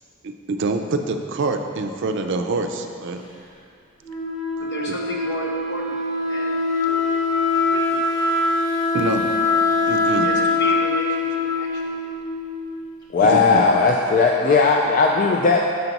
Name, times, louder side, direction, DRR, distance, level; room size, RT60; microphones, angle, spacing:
voice 1, 0.2-3.2 8.9-9.3 9.9-10.3 13.2-13.7, right 3 dB, 60° right, 6 dB, 0.4 m, -25 dB
Wind instrument woodwind instrument, 4.0-12.8, left 3 dB, 20° left, 1.0 m, -23 dB
voice 2, 4.7-6.0 6.3-7.2 7.7-8.2 10.2-12.2, left 1 dB, 55° left, -2 dB, 1.0 m, -33 dB
voice 3, 13.1-15.6, left 4 dB, 40° left, 0 dB, 0.3 m, -17 dB
6.7 x 5.9 x 4.0 m, 2.4 s
head